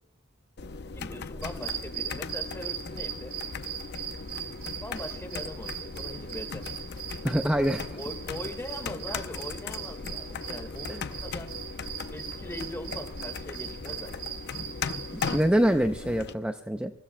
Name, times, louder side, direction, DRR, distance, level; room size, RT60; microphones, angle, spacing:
sound 1, 0.6-16.3, left 4 dB, 55° left, 0.6 m, -38 dB
voice 1, 0.9-3.3 4.8-6.8 7.9-11.5 12.1-14.3, left 1 dB, 10° left, 5 dB, 1.7 m, -41 dB
sound 2, 1.4-15.4, right 9 dB, 50° right, 4.6 m, -40 dB
voice 2, 7.2-8.0 10.9-11.0 15.3-16.9, equal, 5° right, 7 dB, 0.5 m, -25 dB
27.5 x 15.5 x 2.2 m, 0.68 s
head